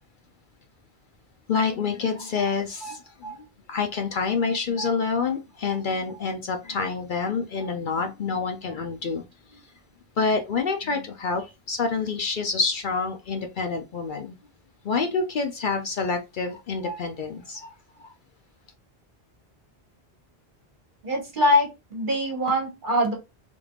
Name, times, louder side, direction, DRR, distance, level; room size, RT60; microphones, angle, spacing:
voice 1, 1.5-3.4 3.7-9.2 10.2-11.4 11.7-14.4 14.8-17.7, left 4 dB, 60° left, 0.6 m, -27 dB
voice 2, 21.0-23.1, left 1 dB, 50° right, 1.3 m, -23 dB
3.5 x 3.3 x 2.3 m
omnidirectional pair, 1.1 m